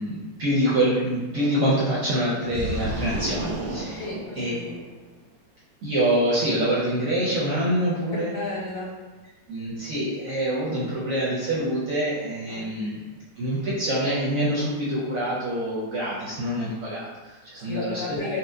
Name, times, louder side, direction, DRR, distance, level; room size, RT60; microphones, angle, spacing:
voice 1, 0.0-4.0 4.4-4.5 5.8-8.3 9.5-13.0 13.4-18.3, right 1 dB, 65° right, -7 dB, 0.8 m, -25 dB
sound 1, 2.5-4.9, right 1 dB, 85° right, 1.3 m, -31 dB
voice 2, 4.0-4.8 8.3-8.9 12.5-12.9 17.7-18.4, left 3 dB, 90° left, -5 dB, 1.7 m, -33 dB
4.1 x 2.1 x 2.6 m, 1.3 s
omnidirectional pair, 2.0 m